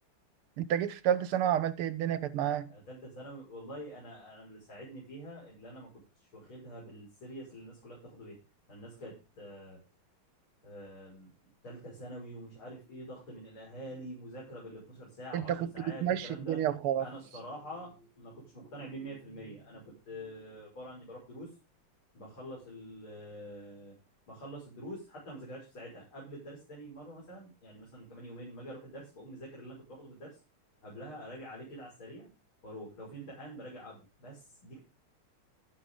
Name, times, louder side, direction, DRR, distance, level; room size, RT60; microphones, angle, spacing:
voice 1, 0.6-2.7 15.3-15.7 16.0-17.1, right 10 dB, 80° right, 1.8 m, -30 dB
voice 2, 2.7-8.4 8.7-9.8 10.6-11.3 11.6-16.7 17.0-21.5 22.1-24.0 24.3-30.4 30.8-32.3 32.6-34.8, equal, 70° left, 6.8 m, -46 dB
13.0 x 12.0 x 3.9 m
omnidirectional pair, 2.4 m